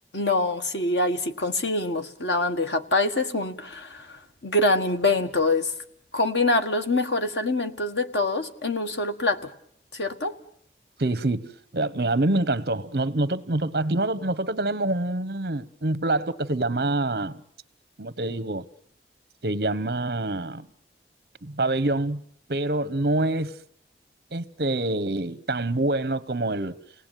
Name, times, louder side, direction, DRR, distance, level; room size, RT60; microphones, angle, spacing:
voice 1, 0.1-4.1 4.4-5.7 6.1-9.5 9.9-10.4, left 2 dB, 90° left, 1.8 m, -25 dB
voice 2, 11.0-17.4 18.0-18.6 19.4-20.7 21.4-22.2 22.5-23.5 24.3-26.8, right 2 dB, 65° right, 1.0 m, -26 dB
29.0 x 19.0 x 9.2 m
head